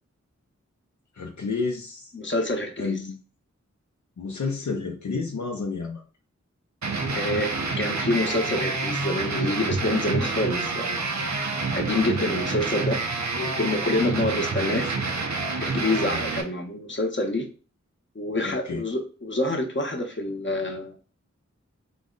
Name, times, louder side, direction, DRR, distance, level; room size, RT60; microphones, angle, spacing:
voice 1, 1.2-2.1 2.8-3.2 4.2-6.0 18.4-18.8, left 4 dB, 80° left, 0 dB, 0.6 m, -30 dB
voice 2, 2.1-3.1 7.1-11.0 11.3-13.0 13.4-14.9 15.6-17.5 18.1-21.1, left 2 dB, 40° left, 3 dB, 0.8 m, -27 dB
sound 1, 6.8-16.4, right 3 dB, 70° right, 0.6 m, -28 dB
3.9 x 2.1 x 3.7 m, 0.37 s
wide cardioid pair, 55°, 29 cm